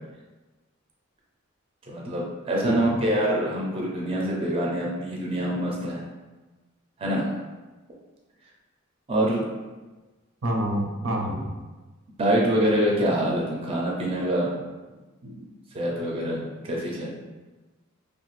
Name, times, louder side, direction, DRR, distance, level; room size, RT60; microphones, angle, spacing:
voice 1, 1.9-6.0 7.0-7.3 9.1-9.4 12.2-14.5 15.7-17.1, right 1 dB, 30° right, -3 dB, 0.5 m, -25 dB
voice 2, 10.4-11.4 15.2-15.5, equal, 75° right, 0 dB, 0.5 m, -27 dB
2.8 x 2.2 x 3.0 m, 1.2 s
head